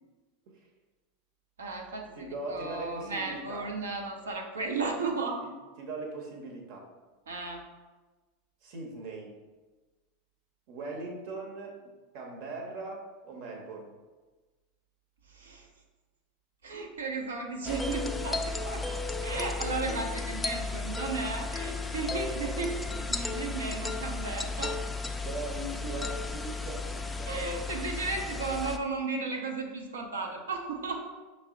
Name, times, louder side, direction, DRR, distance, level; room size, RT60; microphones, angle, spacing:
voice 1, 1.6-5.4 7.3-7.6 15.3-15.7 16.6-24.8 27.2-31.0, right 3 dB, 80° right, 2 dB, 0.6 m, -35 dB
voice 2, 2.1-3.7 5.4-6.9 8.6-9.3 10.7-13.9 25.2-27.3, right 2 dB, 55° right, 1 dB, 0.9 m, -40 dB
sound 1, 17.6-28.8, left 3 dB, 10° left, 0.3 m, -34 dB
5.4 x 2.1 x 3.7 m, 1.3 s
hypercardioid pair, 90°, 0 cm